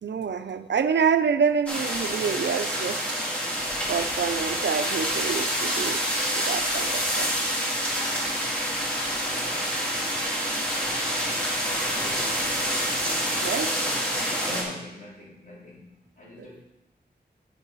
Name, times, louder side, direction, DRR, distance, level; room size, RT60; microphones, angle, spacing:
voice 1, 0.0-3.2 3.9-6.0 6.3-7.3 13.4-13.7 16.4-16.5, right 6 dB, 90° right, 11 dB, 0.6 m, -27 dB
sound 1, 1.7-14.6, equal, 5° left, 2.8 m, -27 dB
voice 2, 9.3-10.4 10.6-12.6 13.7-14.1 14.4-16.6, equal, 50° left, -4 dB, 3.5 m, -44 dB
8.7 x 7.3 x 5.5 m, 0.84 s
wide cardioid pair, 100°, 18 cm